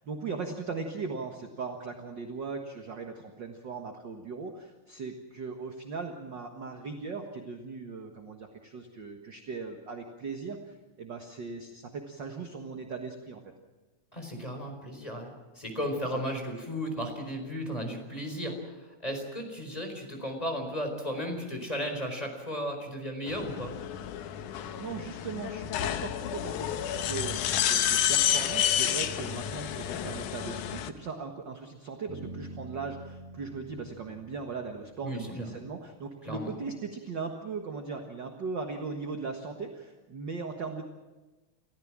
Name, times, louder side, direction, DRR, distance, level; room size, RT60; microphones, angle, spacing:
voice 1, 0.0-13.4 16.0-16.2 24.8-40.8, right 4 dB, 45° right, 4 dB, 1.8 m, -38 dB
voice 2, 14.1-18.8 19.0-23.7 35.0-35.5 36.2-36.5, equal, 10° left, 3 dB, 4.4 m, -35 dB
sound 1, 23.3-30.9, left 10 dB, 90° left, 2.5 m, -30 dB
Bass guitar, 32.1-36.0, right 2 dB, 80° right, 6.4 m, -47 dB
29.5 x 15.0 x 7.5 m, 1.2 s
omnidirectional pair, 3.5 m